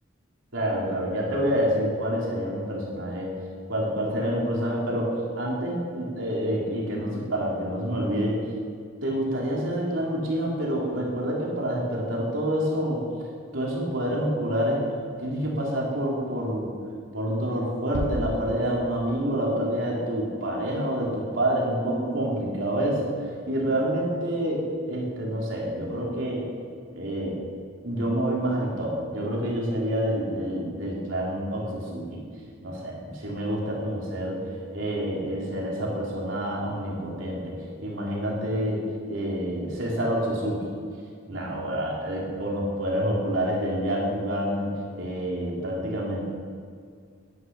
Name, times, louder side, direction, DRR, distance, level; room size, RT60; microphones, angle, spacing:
voice 1, 0.5-3.3 3.7-8.5 9.0-13.3 13.5-14.9 15.2-16.7 17.1-26.4 26.9-27.4 27.8-32.2 32.6-40.6 41.3-46.2, equal, 80° right, -3 dB, 3.3 m, -28 dB
sound 1, 17.9-19.5, left 1 dB, 85° left, 0.8 m, -34 dB
10.5 x 9.9 x 6.1 m, 2.2 s
head